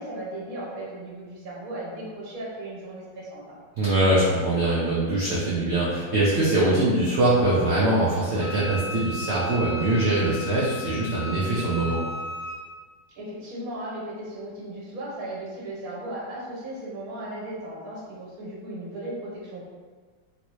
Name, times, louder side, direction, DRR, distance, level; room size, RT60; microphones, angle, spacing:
voice 1, 0.0-3.6 13.2-19.6, right 1 dB, 55° right, -5 dB, 1.3 m, -36 dB
voice 2, 3.8-12.0, right 2 dB, 75° right, -7 dB, 0.6 m, -23 dB
Wind instrument woodwind instrument, 8.4-12.6, left 1 dB, 70° left, 1.1 m, -35 dB
3.1 x 2.7 x 3.0 m, 1.5 s
omnidirectional pair, 2.0 m